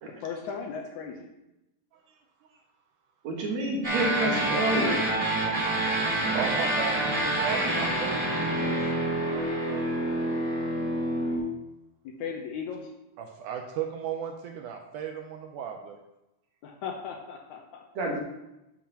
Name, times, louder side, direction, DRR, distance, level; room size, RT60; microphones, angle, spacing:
voice 1, 0.2-1.3 12.2-12.8 16.6-17.8, left 6 dB, 75° left, 1 dB, 1.9 m, -36 dB
voice 2, 3.2-5.0 18.0-18.2, right 1 dB, 60° right, -1 dB, 2.3 m, -28 dB
sound 1, 3.8-11.4, right 1 dB, 10° right, 3.1 m, -27 dB
voice 3, 6.3-8.8 13.2-16.0, right 8 dB, 75° right, 4 dB, 1.9 m, -35 dB
11.0 x 7.4 x 2.9 m, 0.92 s
omnidirectional pair, 4.0 m